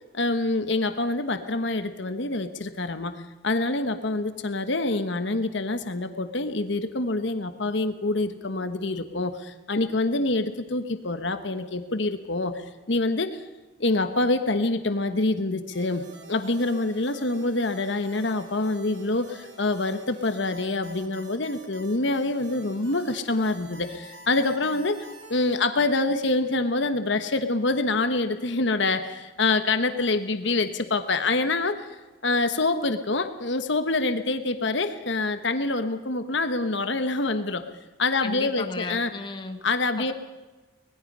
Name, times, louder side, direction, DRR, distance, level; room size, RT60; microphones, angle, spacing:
voice 1, 0.1-13.4 13.8-16.0 16.3-31.9 32.2-37.7 38.0-39.1 39.6-40.1, left 2 dB, 65° left, 8 dB, 1.2 m, -26 dB
sound 1, 15.7-25.6, right 3 dB, 65° right, 4.1 m, -48 dB
voice 2, 38.2-39.6 40.0-40.1, left 3 dB, 25° left, 5 dB, 1.7 m, -34 dB
24.5 x 20.0 x 5.5 m, 1.2 s
head